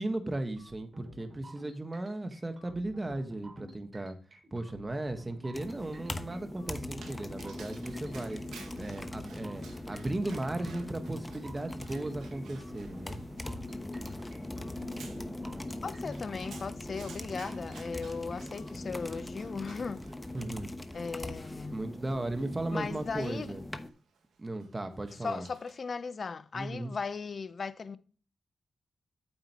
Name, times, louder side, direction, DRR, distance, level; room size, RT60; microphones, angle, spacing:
voice 1, 0.0-4.2 4.5-8.4 8.8-13.2 20.3-20.7 21.7-23.6 24.4-25.5 26.5-26.9, right 2 dB, 30° right, 1.5 m, -36 dB
sound 1, 0.6-18.7, equal, 55° right, 3.5 m, -53 dB
sound 2, 5.5-23.9, left 1 dB, 20° left, 1.1 m, -41 dB
Dog, 6.9-26.0, right 5 dB, 85° right, 1.6 m, -56 dB
voice 2, 15.8-20.0 20.9-21.8 22.7-23.5 25.2-28.0, left 5 dB, 60° left, 0.7 m, -37 dB
9.1 x 7.3 x 3.1 m
supercardioid pair, 45°, 0 cm